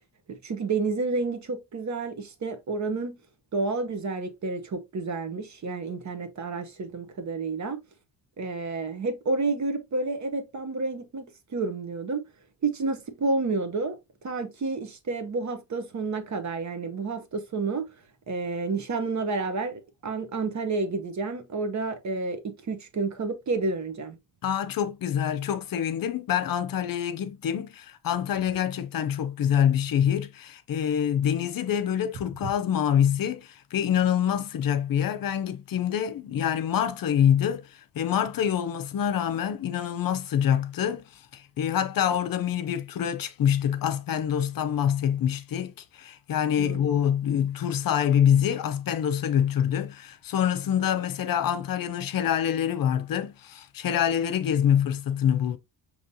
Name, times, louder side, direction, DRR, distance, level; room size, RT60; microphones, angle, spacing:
voice 1, 0.3-3.2 3.5-7.8 8.4-12.2 12.6-14.0 14.2-17.9 18.3-24.2 46.6-46.8, right 3 dB, 45° right, 0.9 m, -30 dB
voice 2, 24.4-55.6, left 9 dB, 55° left, 0.6 m, -26 dB
5.2 x 3.0 x 2.7 m
cardioid pair, 100°, 41 cm